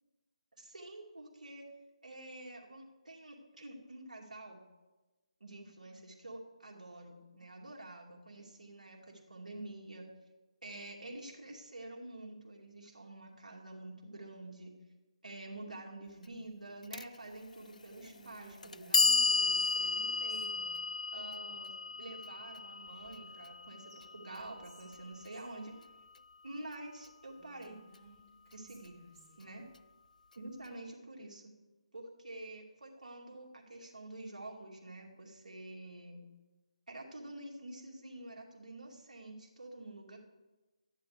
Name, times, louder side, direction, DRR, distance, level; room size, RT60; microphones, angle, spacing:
voice 1, 0.6-1.7 2.0-4.6 5.4-10.1 10.6-14.7 15.2-20.6 21.1-25.9 26.4-27.8 28.5-29.0 29.4-29.6 30.4-31.5 31.9-36.2 36.9-40.2, right 2 dB, 85° right, -1 dB, 2.6 m, -48 dB
Clock, 16.9-17.0 18.0-18.1 18.6-24.7, left 4 dB, 80° left, 0.4 m, -33 dB
Whispering, 18.0-20.8 22.9-23.6 23.9-24.0 24.4-25.5 27.3-29.5, right 2 dB, 15° right, 3.6 m, -60 dB
14.5 x 10.5 x 3.4 m, 1.2 s
figure-of-eight pair, 155°, 4 cm